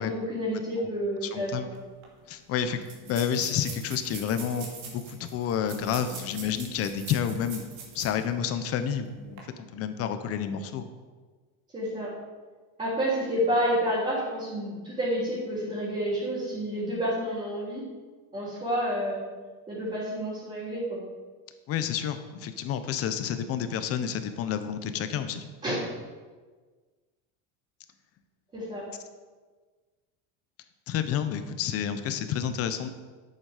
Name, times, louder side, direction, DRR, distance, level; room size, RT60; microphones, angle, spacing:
voice 1, 0.0-1.7 11.7-12.1 12.8-17.8 18.3-19.2 19.7-21.0 25.6-25.8 28.5-28.8, equal, 15° right, -10 dB, 3.5 m, -29 dB
voice 2, 1.3-1.7 2.3-10.9 21.7-25.4 30.9-32.9, left 8 dB, 35° left, 10 dB, 0.8 m, -30 dB
sound 1, 1.7-1.8 2.0-2.1 2.8-8.2 8.6-8.7 9.2-9.4, right 5 dB, 90° right, 2.8 m, -43 dB
11.0 x 8.2 x 5.0 m, 1.4 s
cardioid pair, 160°, 40 cm